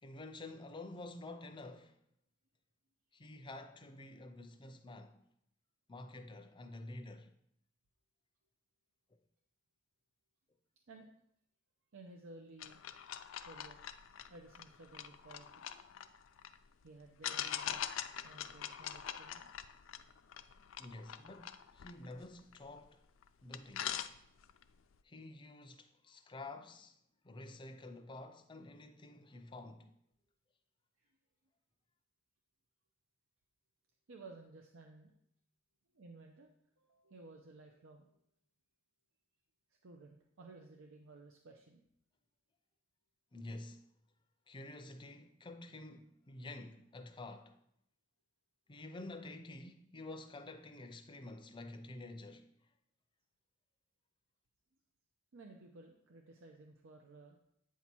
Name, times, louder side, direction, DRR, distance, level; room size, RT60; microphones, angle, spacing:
voice 1, 0.0-2.0 3.1-5.2 5.9-7.3 20.8-23.0 23.4-24.0 25.0-27.0 27.2-29.9 43.3-43.9 44.5-47.6 48.7-52.5, left 2 dB, 25° left, 0.5 m, -49 dB
voice 2, 11.9-12.8 13.4-13.8 14.3-15.7 16.8-17.8 18.2-19.5 31.0-31.1 34.1-35.1 35.9-36.5 36.8-38.2 39.8-41.8 55.3-57.4, right 3 dB, 75° right, 0.6 m, -56 dB
sound 1, 12.6-16.6 17.2-22.9 23.2-23.3 23.5-24.6, left 10 dB, 75° left, 0.4 m, -43 dB
8.3 x 2.8 x 6.0 m
head